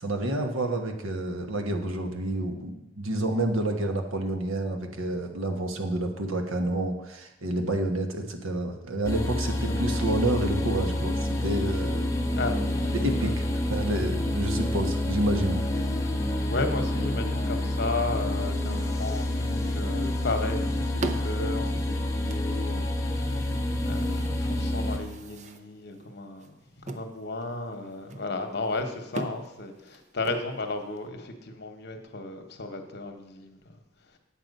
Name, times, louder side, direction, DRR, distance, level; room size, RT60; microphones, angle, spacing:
voice 1, 0.0-12.1 12.9-15.6, right 1 dB, 80° right, 4 dB, 1.3 m, -29 dB
sound 1, 9.0-25.0, left 1 dB, 15° left, 1.0 m, -28 dB
voice 2, 12.4-12.9 13.2-13.3 16.5-23.5 23.8-33.6, left 2 dB, 55° left, 5 dB, 1.1 m, -34 dB
sound 2, 20.9-31.1, right 2 dB, 35° right, 0.5 m, -42 dB
8.8 x 7.5 x 5.3 m, 0.91 s
head